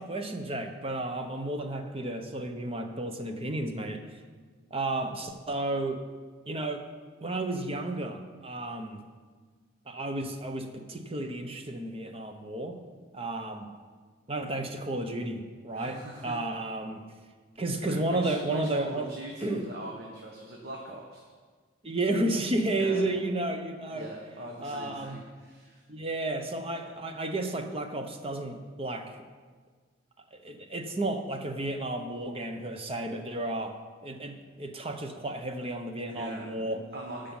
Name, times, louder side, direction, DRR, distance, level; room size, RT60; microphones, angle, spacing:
voice 1, 0.0-4.2 4.7-6.0 6.5-6.9 7.2-9.1 9.9-12.8 13.1-13.7 14.3-17.0 17.6-19.1 19.4-19.6 21.8-24.1 24.6-25.2 25.9-29.2 30.3-36.8, right 2 dB, 30° right, 6 dB, 0.9 m, -32 dB
voice 2, 15.7-16.4 17.8-21.2 22.7-23.0 23.9-25.8 36.0-37.3, right 1 dB, 55° right, -1 dB, 1.2 m, -42 dB
13.0 x 5.2 x 7.2 m, 1.5 s
head